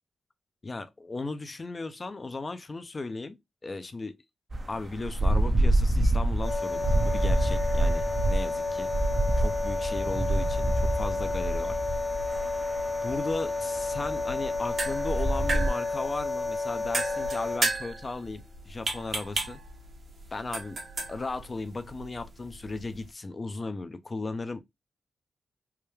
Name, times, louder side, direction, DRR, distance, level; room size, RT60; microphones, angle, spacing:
voice 1, 0.6-3.4 3.6-4.2 4.7-8.9 9.3-11.8 13.0-19.6 20.3-20.8 21.1-24.6, left 3 dB, 40° left, 0.6 m, -36 dB
sound 1, 4.5-15.7, right 1 dB, 40° right, 0.6 m, -27 dB
sound 2, 6.4-17.6, left 3 dB, 75° left, 1.5 m, -31 dB
sound 3, 14.5-23.1, right 3 dB, 60° right, 1.1 m, -35 dB
3.5 x 2.2 x 3.1 m
supercardioid pair, 40°, 0 cm